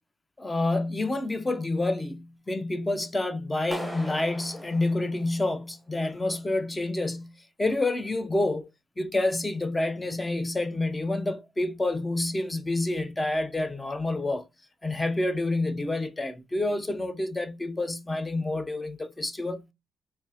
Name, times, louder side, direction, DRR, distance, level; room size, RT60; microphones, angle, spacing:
voice 1, 0.4-8.7 9.0-14.4 14.8-19.6, left 2 dB, 15° left, 0.6 m, -28 dB
Clapping, 3.7-5.8, equal, ahead, 1.0 m, -39 dB
3.5 x 2.6 x 2.8 m
cardioid pair, 90°, 0 cm